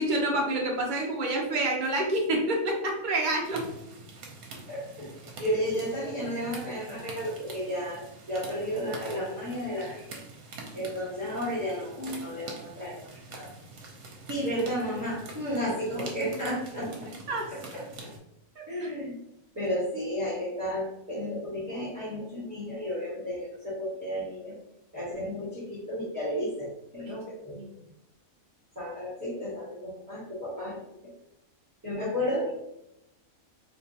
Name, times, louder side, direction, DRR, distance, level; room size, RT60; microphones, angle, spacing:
voice 1, 0.0-3.6 17.3-17.5 27.1-27.2 27.5-27.7 31.9-32.0, right 1 dB, 40° right, 0 dB, 0.8 m, -28 dB
sound 1, 3.4-18.2, right 3 dB, 80° right, 1.2 m, -45 dB
voice 2, 4.7-5.1 5.4-10.1 10.7-13.5 14.3-16.9 17.5-17.8 18.7-19.1 19.5-24.5 24.9-27.6 28.7-30.8 31.8-32.5, equal, 10° right, -11 dB, 1.2 m, -33 dB
3.5 x 3.0 x 2.7 m, 0.84 s
omnidirectional pair, 1.5 m